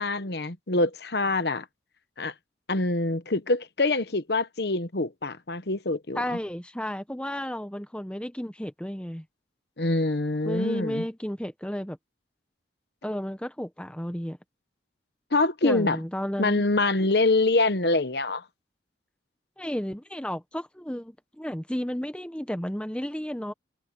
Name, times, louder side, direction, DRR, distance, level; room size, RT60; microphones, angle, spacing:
voice 1, 0.0-1.6 2.2-2.3 2.7-6.4 9.8-11.0 15.3-16.0 16.4-18.4, left 2 dB, 60° left, 1.1 m, -25 dB
voice 2, 6.1-9.2 10.4-12.0 13.0-14.4 15.6-16.6 19.6-23.5, equal, 5° left, 0.9 m, -32 dB
head